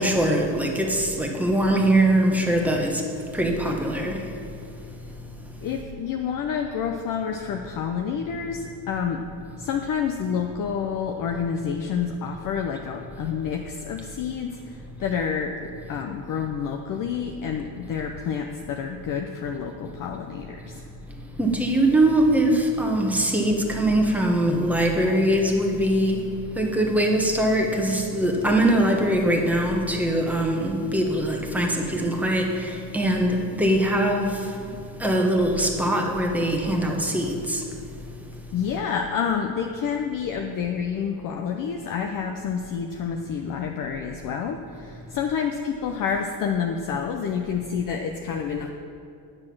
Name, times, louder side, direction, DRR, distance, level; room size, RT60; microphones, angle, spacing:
voice 1, 0.0-3.1 3.3-4.4 21.4-26.3 26.5-34.7 35.0-37.7, right 1 dB, 5° right, 0 dB, 1.2 m, -22 dB
voice 2, 5.6-9.2 9.6-20.9 38.5-48.7, left 7 dB, 45° left, 3 dB, 0.7 m, -28 dB
9.9 x 6.5 x 6.1 m, 2.5 s
cardioid pair, 125°, 46 cm